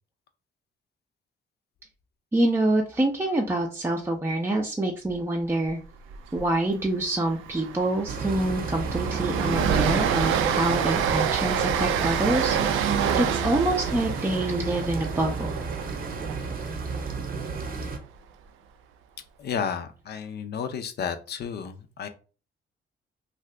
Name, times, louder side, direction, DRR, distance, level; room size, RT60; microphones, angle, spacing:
voice 1, 2.3-5.8 6.3-15.6, right 1 dB, 10° right, 0 dB, 0.5 m, -26 dB
Train, 6.1-6.4 6.7-6.8 7.2-17.3, right 8 dB, 85° right, 0.4 m, -27 dB
sound 1, 8.1-18.0, right 4 dB, 45° right, 0.7 m, -33 dB
voice 2, 19.4-22.1, left 7 dB, 55° left, 9 dB, 0.5 m, -32 dB
2.7 x 2.4 x 3.2 m, 0.36 s
cardioid pair, 90°, 20 cm